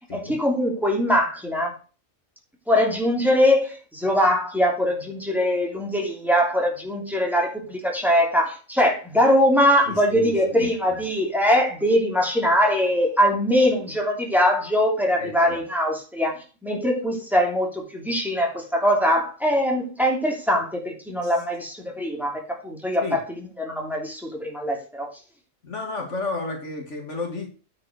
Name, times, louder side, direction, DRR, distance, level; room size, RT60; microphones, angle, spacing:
voice 1, 0.1-1.7 2.7-16.3 16.6-25.1, equal, ahead, 0 dB, 2.9 m, -22 dB
voice 2, 9.9-10.7 15.2-15.6 21.2-21.3 23.0-23.2 25.6-27.5, left 3 dB, 60° left, 3 dB, 2.4 m, -32 dB
9.6 x 5.7 x 6.3 m, 0.35 s
omnidirectional pair, 1.4 m